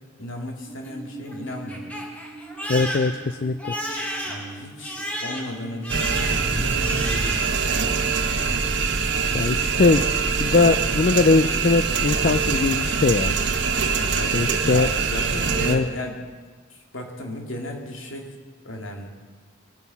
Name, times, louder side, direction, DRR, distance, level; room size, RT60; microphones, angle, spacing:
voice 1, 0.2-1.9 4.3-7.4 14.0-16.2 16.9-18.3 18.6-19.1, left 1 dB, 75° left, 2 dB, 2.6 m, -34 dB
Crying sobbing, 0.7-7.7 8.0-8.6, equal, 5° left, 1.8 m, -34 dB
voice 2, 2.7-3.7 9.3-10.0 10.4-13.3 14.3-14.9 15.6-15.9, left 3 dB, 45° left, 11 dB, 0.4 m, -20 dB
sound 1, 5.9-15.8, right 5 dB, 60° right, 1.2 m, -23 dB
22.5 x 9.6 x 5.9 m, 1.4 s
head